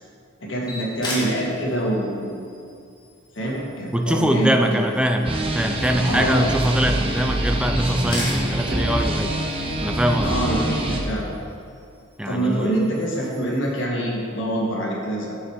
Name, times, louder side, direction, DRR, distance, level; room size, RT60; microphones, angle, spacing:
voice 1, 0.4-2.4 3.3-4.9 6.1-6.5 10.2-11.3 12.2-15.4, right 1 dB, 65° left, -3 dB, 1.8 m, -25 dB
sound 1, 0.6-13.7, left 1 dB, 20° left, 1.7 m, -39 dB
voice 2, 3.9-9.4 9.8-10.4 12.2-12.8, equal, 5° right, 4 dB, 0.4 m, -22 dB
sound 2, 5.2-11.0, right 1 dB, 25° right, 0.8 m, -25 dB
7.8 x 6.5 x 4.8 m, 2.4 s
head